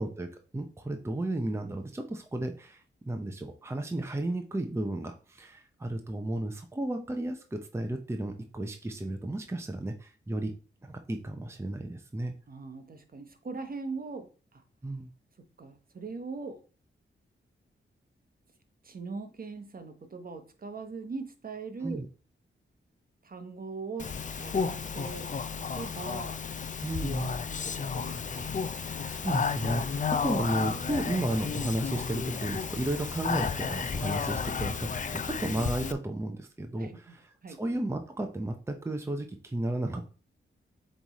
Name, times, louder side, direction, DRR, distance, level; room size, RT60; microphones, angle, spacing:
voice 1, 0.0-10.5 10.8-12.3 14.8-15.1 21.8-22.1 26.8-27.3 29.1-40.1, right 1 dB, 10° right, 5 dB, 0.7 m, -33 dB
voice 2, 12.5-14.6 15.6-16.6 18.8-22.0 23.2-25.3 25.6-26.4 27.1-28.5 36.8-37.6, right 4 dB, 45° right, 7 dB, 1.0 m, -41 dB
Speech, 24.0-35.9, left 5 dB, 35° left, 0.5 m, -32 dB
7.4 x 3.2 x 4.1 m, 0.37 s
wide cardioid pair, 85°, 21 cm